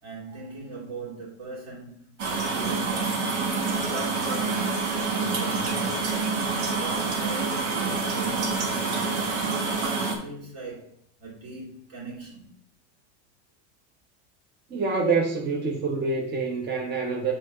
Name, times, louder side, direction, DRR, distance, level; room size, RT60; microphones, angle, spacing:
voice 1, 0.0-3.1 3.6-6.3 6.7-9.5 9.9-12.6, right 3 dB, 55° right, 2.7 m, -40 dB
sound 1, 2.2-10.2, right 4 dB, 80° right, 1.6 m, -27 dB
voice 2, 14.7-17.3, right 4 dB, 30° right, 1.1 m, -26 dB
6.5 x 3.9 x 5.0 m
hypercardioid pair, 95°, 35 cm